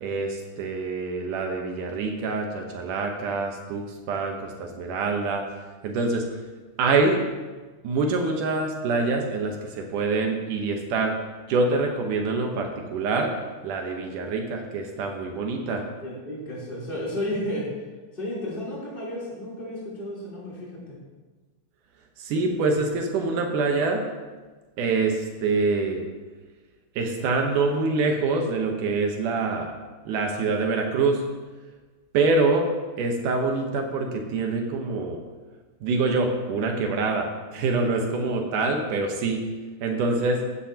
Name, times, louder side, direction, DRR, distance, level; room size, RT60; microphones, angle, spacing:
voice 1, 0.0-5.5 5.8-6.3 6.8-7.2 7.8-11.1 11.5-13.3 13.6-15.8 22.2-24.0 24.8-26.0 27.0-29.7 30.1-31.2 32.1-32.7 33.0-35.2 35.8-39.4 39.8-40.4, right 3 dB, 85° right, 2 dB, 2.6 m, -25 dB
voice 2, 16.0-17.7 18.1-21.0, left 1 dB, 15° left, -7 dB, 3.6 m, -32 dB
15.5 x 10.0 x 2.9 m, 1.3 s
omnidirectional pair, 3.5 m